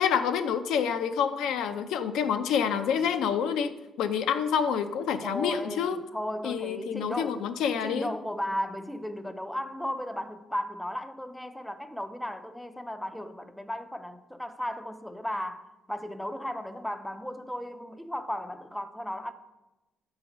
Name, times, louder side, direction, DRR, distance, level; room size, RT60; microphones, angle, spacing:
voice 1, 0.0-6.0 6.4-8.1, left 7 dB, 85° left, 0.4 m, -28 dB
voice 2, 5.2-7.4 7.8-19.3, left 1 dB, 5° left, 0.4 m, -35 dB
6.7 x 4.0 x 4.9 m
cardioid pair, 90°, 0 cm